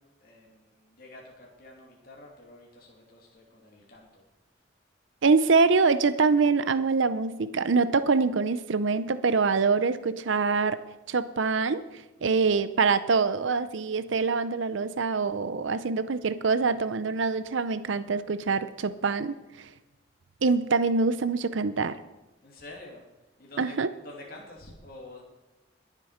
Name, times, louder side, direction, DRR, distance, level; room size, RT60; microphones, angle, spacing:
voice 1, 0.2-4.2 22.4-23.0 23.4-23.7 24.0-25.2, left 2 dB, 50° left, -2 dB, 2.8 m, -48 dB
voice 2, 5.2-10.8 11.1-11.8 12.2-19.7 20.4-22.0 23.6-23.9, right 4 dB, 75° right, 13 dB, 0.6 m, -25 dB
22.0 x 7.5 x 5.0 m, 1.0 s
head